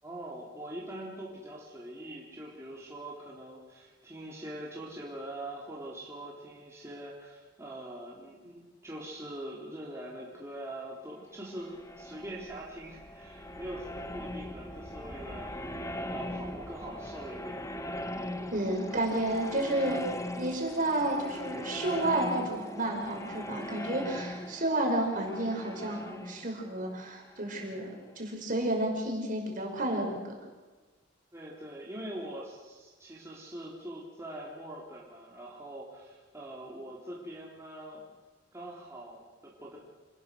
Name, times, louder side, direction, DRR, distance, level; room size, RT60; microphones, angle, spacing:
voice 1, 0.0-15.5 15.8-17.6 18.9-19.0 31.3-38.1 38.5-39.8, right 1 dB, 15° right, -5 dB, 3.8 m, -43 dB
sound 1, 11.4-28.0, left 1 dB, 15° left, 1.5 m, -40 dB
voice 2, 18.5-27.9 28.2-30.3, right 1 dB, 45° right, 1 dB, 5.7 m, -31 dB
27.5 x 20.0 x 6.4 m, 1.3 s
head